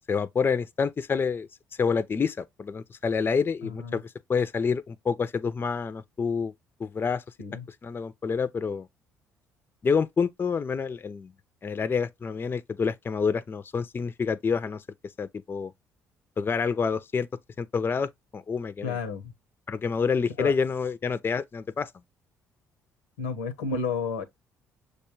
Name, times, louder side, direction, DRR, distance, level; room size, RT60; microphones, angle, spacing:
voice 1, 0.1-1.5 1.8-6.5 6.8-7.2 7.8-8.9 9.8-11.3 11.6-14.8 15.2-15.7 16.4-17.3 17.6-19.0 19.7-21.9, left 5 dB, 30° left, 0.4 m, -28 dB
voice 2, 3.6-4.0 7.4-7.6 18.8-19.3 20.4-20.5 23.2-24.2, left 5 dB, 90° left, 0.7 m, -31 dB
6.4 x 2.2 x 3.0 m
hypercardioid pair, 55°, 7 cm